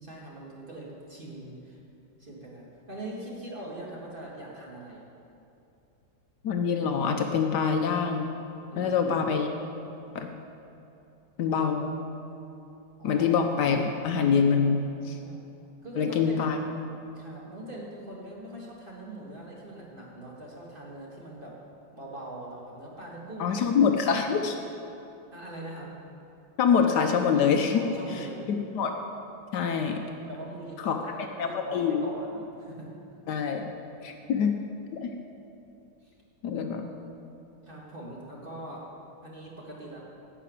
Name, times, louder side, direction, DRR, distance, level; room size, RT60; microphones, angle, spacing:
voice 1, 0.0-1.8 2.2-5.1 8.7-9.1 13.0-13.3 15.2-15.4 15.8-16.4 17.2-21.6 21.9-23.6 25.3-25.9 27.7-28.6 30.3-32.9 36.0-36.1 36.7-36.8 37.6-38.8 39.2-40.0, right 1 dB, 30° right, -4 dB, 1.6 m, -42 dB
voice 2, 6.4-8.3 8.8-9.5 10.1-10.4 11.4-12.0 13.0-15.2 16.0-16.6 23.4-24.6 26.6-27.8 28.1-28.9 29.5-30.0 30.8-31.0 31.4-32.0 33.3-33.7 34.0-34.6 34.9-35.1 36.4-36.9, left 6 dB, 70° left, 4 dB, 1.2 m, -25 dB
11.0 x 5.8 x 8.2 m, 2.8 s
omnidirectional pair, 2.0 m